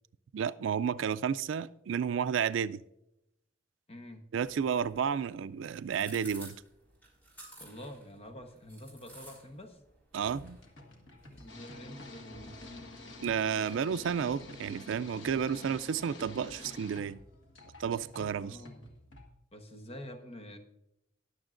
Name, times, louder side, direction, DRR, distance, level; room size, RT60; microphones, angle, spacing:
voice 1, 0.3-2.8 4.3-6.6 10.1-10.6 13.2-17.2 17.8-18.6, right 7 dB, 80° right, 0.4 m, -31 dB
voice 2, 3.9-4.2 7.6-9.8 11.3-12.9 18.4-18.8 19.5-20.6, left 1 dB, 35° left, 1.1 m, -47 dB
sound 1, 4.4-16.1, right 1 dB, 10° left, 4.0 m, -56 dB
sound 2, 10.2-19.3, left 1 dB, 90° left, 1.5 m, -53 dB
sound 3, 11.5-17.0, left 2 dB, 70° left, 1.3 m, -49 dB
19.5 x 7.1 x 2.5 m
head